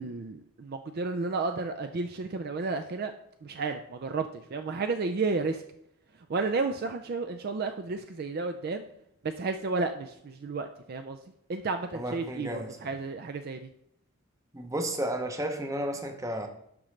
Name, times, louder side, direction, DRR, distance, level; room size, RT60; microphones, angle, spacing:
voice 1, 0.0-3.1 3.4-5.6 6.3-8.8 9.2-11.2 11.5-13.7, right 3 dB, 45° right, 0.4 m, -32 dB
voice 2, 11.9-12.8 14.5-16.5, right 1 dB, 15° right, 0.7 m, -32 dB
12.0 x 5.0 x 3.2 m
head